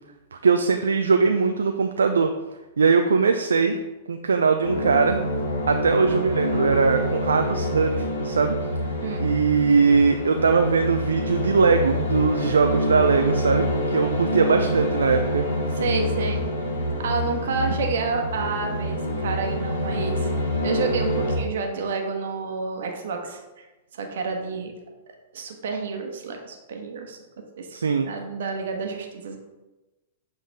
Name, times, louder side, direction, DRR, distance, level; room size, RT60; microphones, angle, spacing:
voice 1, 0.3-2.3 2.8-3.8 4.1-5.2 5.7-8.6 9.2-15.4 27.7-28.1, right 5 dB, 85° right, 5 dB, 0.4 m, -21 dB
sound 1, 4.6-21.4, equal, 80° left, 1.2 m, -26 dB
voice 2, 15.7-16.4 17.0-20.3 20.6-23.6 23.9-24.7 25.3-27.2 27.6-27.7 28.0-29.4, right 4 dB, 70° right, 3 dB, 1.1 m, -29 dB
7.4 x 3.8 x 3.4 m, 1.1 s
hypercardioid pair, 110°, 0 cm